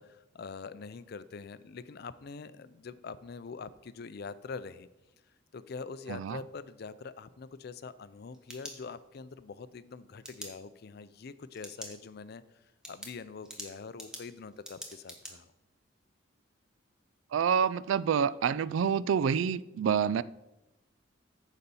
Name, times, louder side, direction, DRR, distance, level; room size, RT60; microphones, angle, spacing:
voice 1, 0.0-4.9 5.5-12.4 12.9-15.5, left 4 dB, 55° left, 0.4 m, -44 dB
voice 2, 6.1-6.4 17.3-20.2, right 7 dB, 80° right, 0.3 m, -27 dB
sound 1, 8.1-9.3 10.2-10.5 11.5-12.0 12.3-12.4 12.8-15.3, equal, 5° right, 1.2 m, -45 dB
9.5 x 4.1 x 6.9 m
head